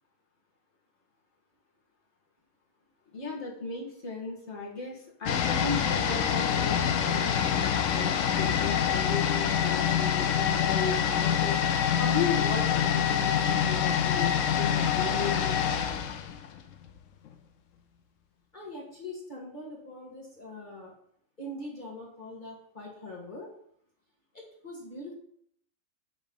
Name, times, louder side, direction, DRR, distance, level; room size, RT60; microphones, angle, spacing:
voice 1, 3.1-11.6 12.0-15.6, left 5 dB, 55° left, -2 dB, 1.7 m, -35 dB
sound 1, 5.3-17.0 17.3-17.4, left 8 dB, 75° left, 1.0 m, -26 dB
voice 2, 18.5-20.9 21.4-23.5 24.3-25.1, left 1 dB, 35° left, -4 dB, 1.6 m, -42 dB
7.7 x 3.1 x 5.2 m, 0.67 s
omnidirectional pair, 1.4 m